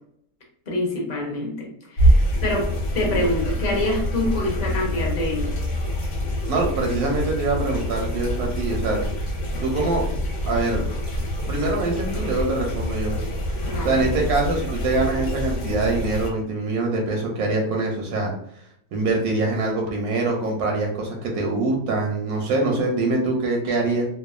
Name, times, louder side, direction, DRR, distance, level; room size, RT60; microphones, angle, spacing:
voice 1, 0.7-2.7 2.9-5.5 13.6-14.0, left 1 dB, 40° left, -2 dB, 0.6 m, -26 dB
sound 1, 2.0-16.3, equal, 60° left, 1.0 m, -25 dB
voice 2, 6.5-9.0 9.6-10.0 10.4-10.8 11.5-13.1 13.8-18.3 18.9-24.1, right 2 dB, 80° right, 1 dB, 1.1 m, -24 dB
2.7 x 2.2 x 2.3 m, 0.70 s
omnidirectional pair, 1.6 m